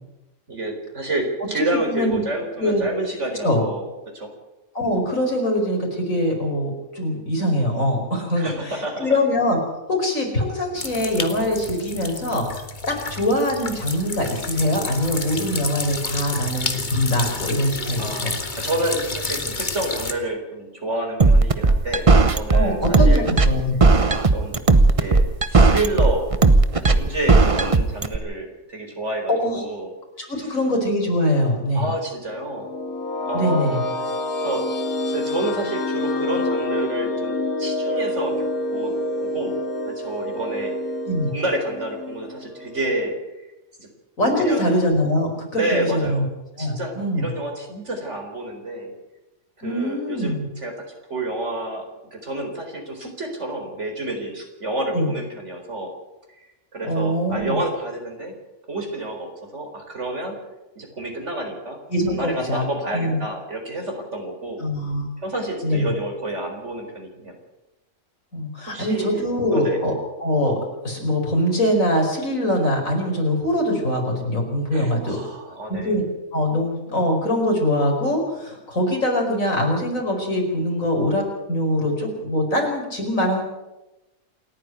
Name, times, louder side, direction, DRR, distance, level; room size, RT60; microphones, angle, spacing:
voice 1, 0.5-3.9 4.1-4.3 8.3-9.1 18.0-23.2 23.9-24.6 25.0-26.3 26.8-29.9 30.4-30.5 31.7-32.7 33.2-33.8 34.4-38.5 38.7-38.9 39.2-39.6 39.9-40.7 41.3-43.2 43.8-43.9 44.4-44.7 45.5-46.2 46.6-48.9 49.6-50.7 51.1-51.8 52.1-55.9 56.4-58.4 58.7-60.4 60.8-61.8 62.1-64.6 65.2-67.3 68.7-69.8 74.7-76.0, right 1 dB, 55° right, 3 dB, 4.6 m, -29 dB
voice 2, 1.7-2.2 2.6-2.9 3.4-3.6 4.7-9.6 9.9-18.4 22.5-23.7 29.3-29.6 30.2-31.9 33.3-33.8 41.1-41.3 44.2-46.2 46.6-47.3 49.6-50.5 54.9-55.1 56.9-57.6 61.9-62.6 62.9-63.2 64.6-65.0 65.6-65.9 68.3-69.9 70.2-70.5 70.8-75.2 75.7-76.1 76.3-81.2 81.5-83.4, left 1 dB, 65° left, 1 dB, 5.5 m, -23 dB
sound 1, 10.8-20.1, left 3 dB, 35° left, 1.7 m, -30 dB
sound 2, 21.2-28.2, right 3 dB, 25° right, 0.9 m, -15 dB
sound 3, 32.3-43.1, left 1 dB, 80° left, 2.4 m, -27 dB
28.0 x 9.8 x 9.4 m, 1.0 s
omnidirectional pair, 1.5 m